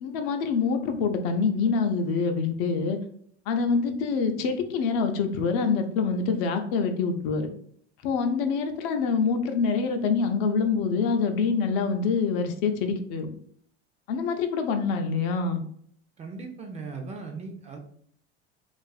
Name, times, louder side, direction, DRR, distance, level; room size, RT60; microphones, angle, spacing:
voice 1, 0.0-3.0 3.5-7.5 8.0-13.3 14.1-15.6, left 5 dB, 60° left, 6 dB, 0.5 m, -25 dB
voice 2, 16.2-17.8, right 4 dB, 20° right, 3 dB, 0.4 m, -38 dB
2.5 x 2.4 x 2.3 m, 0.63 s
hypercardioid pair, 75°, 32 cm